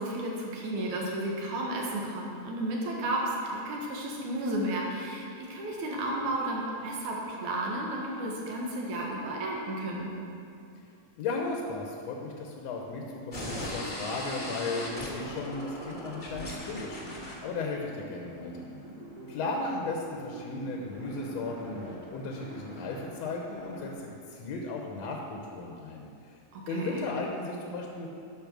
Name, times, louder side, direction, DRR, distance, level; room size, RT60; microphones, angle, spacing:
voice 1, 0.0-10.1 26.5-27.1, right 1 dB, 75° right, -2 dB, 2.9 m, -33 dB
voice 2, 11.1-17.1 17.4-18.7 19.3-26.1 26.7-28.1, left 3 dB, 70° left, 0 dB, 1.9 m, -35 dB
sound 1, 13.3-23.9, left 1 dB, 30° left, 0.8 m, -42 dB
sound 2, 13.7-22.1, right 1 dB, 55° right, 2.2 m, -45 dB
10.5 x 6.4 x 6.1 m, 2.5 s
omnidirectional pair, 3.6 m